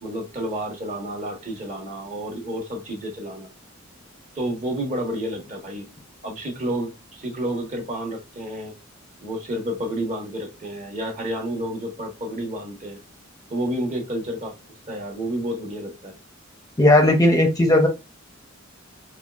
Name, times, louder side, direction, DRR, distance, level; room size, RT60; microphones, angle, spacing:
voice 1, 0.0-3.5 4.3-5.9 6.2-8.8 9.2-13.0 13.5-14.5 14.9-16.1, right 1 dB, 35° right, 1 dB, 1.0 m, -30 dB
voice 2, 16.8-17.9, left 1 dB, 15° left, 3 dB, 0.5 m, -16 dB
4.4 x 2.3 x 2.3 m, 0.28 s
head